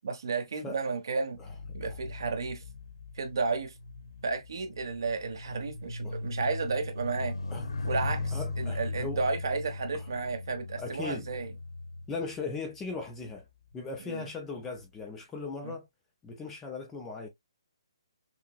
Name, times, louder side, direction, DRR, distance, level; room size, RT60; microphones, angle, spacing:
voice 1, 0.0-1.4 1.7-2.6 3.2-3.7 4.2-7.4 7.8-11.5 14.0-14.2 15.6-15.7, right 4 dB, 50° right, 1.0 m, -32 dB
sound 1, 1.4-13.0 13.7-14.0, left 3 dB, 65° left, 0.9 m, -38 dB
voice 2, 8.3-9.2 9.9-10.1 10.8-11.3 12.1-13.4 13.7-15.9 16.2-17.3, left 4 dB, 5° left, 0.3 m, -38 dB
5.7 x 2.0 x 2.2 m
hypercardioid pair, 180°, 3 cm